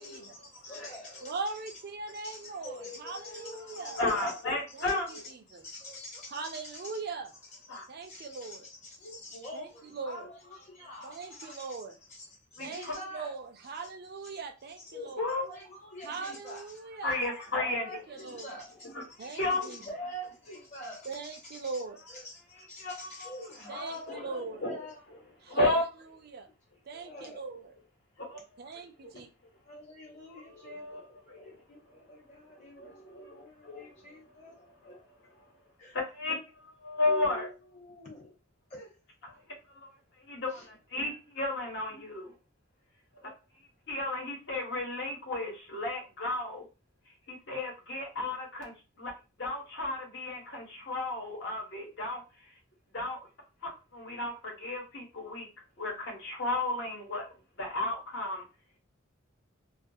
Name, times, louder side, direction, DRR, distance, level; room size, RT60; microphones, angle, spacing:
voice 1, 0.0-1.4 1.7-1.8 2.2-4.4 4.8-7.0 7.7-11.8 12.1-13.3 14.8-16.7 17.5-18.9 19.2-21.8 22.1-25.2 26.9-27.4 29.0-29.3 29.6-34.5 34.8-34.9 35.8-36.0 37.1-38.3 38.7-39.0 40.5-40.7, left 1 dB, 35° left, 0.9 m, -46 dB
voice 2, 1.2-4.0 4.7-5.6 6.3-7.3 7.9-8.7 9.5-10.3 11.0-12.0 12.6-15.2 16.0-17.2 18.1-18.6 19.2-20.0 21.1-22.0 23.7-24.7 25.4-25.9 26.2-26.5 26.8-27.7 28.6-29.3, right 4 dB, 50° right, 0.4 m, -40 dB
voice 3, 4.0-5.0 7.7-7.9 11.4-11.5 12.6-12.9 15.2-15.4 17.0-17.9 18.9-19.0 19.3-19.6 22.8-23.3 23.7-24.3 24.6-24.8 25.5-25.8 28.2-28.4 30.6-31.6 32.4-34.0 36.1-36.3 36.8-37.5 39.7-39.8 40.3-42.3 43.9-46.6 47.3-49.1 49.4-52.2 52.9-53.2 53.6-55.5 55.8-57.2 57.6-58.5, left 2 dB, 60° left, 1.0 m, -33 dB
2.3 x 2.3 x 2.6 m
head